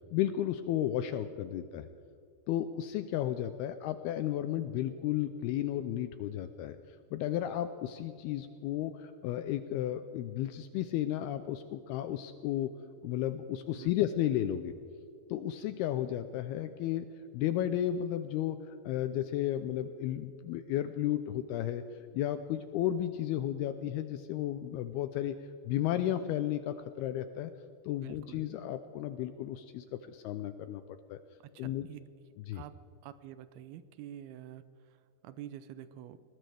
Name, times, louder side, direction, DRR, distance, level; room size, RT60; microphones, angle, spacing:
voice 1, 0.1-1.9 2.5-12.7 13.0-14.7 15.3-17.1 17.3-21.8 22.1-25.4 25.7-27.5 27.8-30.8 31.1-31.2 31.6-31.9 32.5-32.6, left 12 dB, 90° left, 10 dB, 2.3 m, -33 dB
voice 2, 28.0-28.5 31.4-32.0 32.5-32.7 33.0-36.2, right 11 dB, 80° right, 13 dB, 2.2 m, -48 dB
21.0 x 20.0 x 3.4 m, 2.5 s
omnidirectional pair, 5.1 m